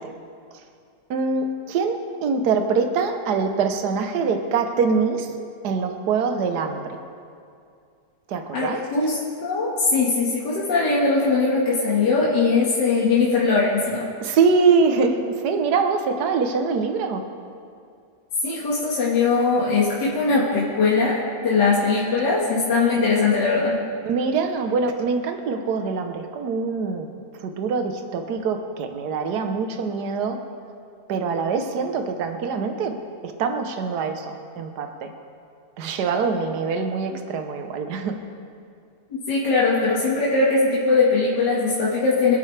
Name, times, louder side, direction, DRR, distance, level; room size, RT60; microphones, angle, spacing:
voice 1, 1.1-5.3 5.6-7.0 8.3-8.8 14.2-17.2 24.1-27.1 27.4-30.4 31.1-32.9 33.2-35.1 35.8-38.2, right 5 dB, 65° right, 5 dB, 1.5 m, -24 dB
voice 2, 8.5-14.1 18.4-23.8 39.1-42.4, left 4 dB, 70° left, -6 dB, 2.4 m, -21 dB
25.5 x 8.9 x 3.4 m, 2.4 s
omnidirectional pair, 1.9 m